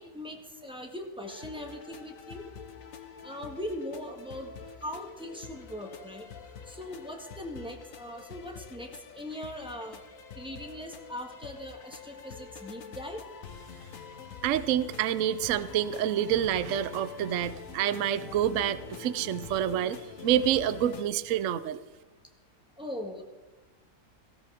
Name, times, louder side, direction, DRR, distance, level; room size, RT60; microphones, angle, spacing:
voice 1, 0.0-2.4 3.2-4.5 4.8-6.3 6.7-10.0 10.3-13.2 22.8-23.2, left 1 dB, 5° right, 3 dB, 1.6 m, -40 dB
sound 1, 1.3-21.0, left 6 dB, 65° left, 1.4 m, -46 dB
voice 2, 14.4-21.8, right 10 dB, 65° right, 15 dB, 0.9 m, -28 dB
18.0 x 16.5 x 3.6 m, 1.1 s
omnidirectional pair, 1.6 m